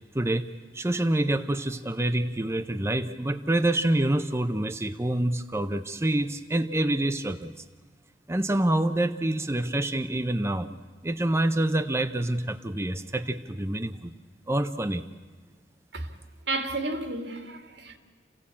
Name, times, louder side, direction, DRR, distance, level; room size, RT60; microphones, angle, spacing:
voice 1, 0.1-7.5 8.3-10.7 11.0-14.1 14.5-15.0, right 1 dB, 15° right, 0.6 m, -27 dB
voice 2, 16.5-18.0, right 2 dB, 85° right, 2.3 m, -32 dB
28.0 x 16.0 x 8.5 m
head